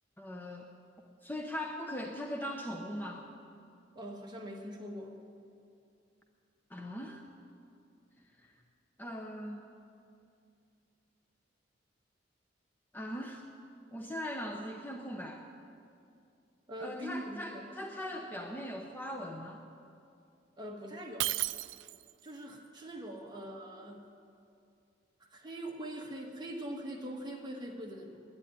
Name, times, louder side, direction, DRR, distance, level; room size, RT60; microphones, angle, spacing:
voice 1, 0.2-0.7 1.2-3.3 6.7-7.2 8.4-8.5 9.0-9.6 12.9-13.4 13.9-15.4 16.8-19.6, equal, 10° left, 2 dB, 0.7 m, -40 dB
voice 2, 3.9-5.1 16.7-17.7 20.6-21.3 22.2-24.1 25.2-28.2, right 1 dB, 25° right, 0 dB, 1.5 m, -42 dB
Shatter, 21.2-22.2, right 16 dB, 75° right, 0.3 m, -34 dB
10.5 x 9.7 x 9.9 m, 2.5 s
head